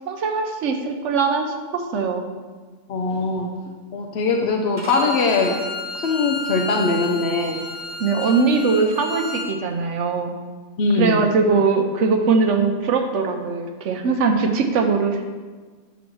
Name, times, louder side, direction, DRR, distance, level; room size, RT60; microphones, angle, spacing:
voice 1, 0.1-2.3 8.0-10.3 10.9-15.2, right 4 dB, 75° right, 5 dB, 1.0 m, -21 dB
voice 2, 2.9-3.5 3.9-5.6 5.9-7.6 10.8-11.2, left 3 dB, 65° left, 2 dB, 0.9 m, -21 dB
Bowed string instrument, 4.8-9.5, left 3 dB, 35° left, 1.4 m, -32 dB
7.0 x 3.1 x 6.0 m, 1.4 s
omnidirectional pair, 1.3 m